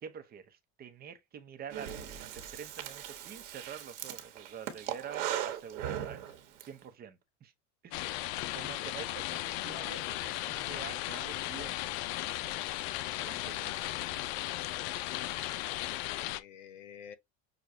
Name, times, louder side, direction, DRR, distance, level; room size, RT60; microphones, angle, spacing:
voice 1, 0.0-6.3 6.6-7.5 7.8-12.0 13.2-13.8, right 7 dB, 25° right, 0.7 m, -47 dB
Breathing, 1.7-6.7, right 10 dB, 80° right, 1.2 m, -39 dB
sound 1, 7.9-16.4, left 15 dB, 60° left, 0.5 m, -36 dB
voice 2, 14.8-15.6 16.1-17.2, left 9 dB, 80° left, 0.8 m, -50 dB
6.4 x 2.3 x 2.6 m
supercardioid pair, 130°, 35 cm